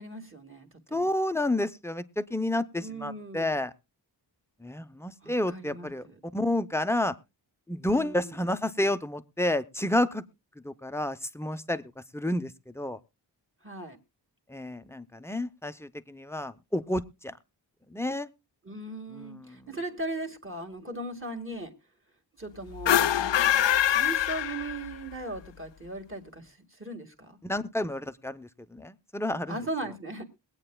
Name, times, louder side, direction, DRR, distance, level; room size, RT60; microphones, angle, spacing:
voice 1, 0.0-1.1 2.8-3.5 5.2-6.2 7.9-8.4 13.6-14.0 18.6-21.7 22.4-23.4 23.9-27.4 29.5-30.2, right 2 dB, 25° right, 1.8 m, -38 dB
voice 2, 0.9-3.7 4.6-6.1 6.3-7.1 7.7-10.2 10.6-11.8 12.1-13.0 14.5-17.3 17.9-18.3 19.1-19.7 27.4-29.6, left 1 dB, 5° left, 0.6 m, -30 dB
sound 1, 22.7-25.1, left 10 dB, 70° left, 0.5 m, -24 dB
22.0 x 8.8 x 2.2 m
wide cardioid pair, 95°, 45 cm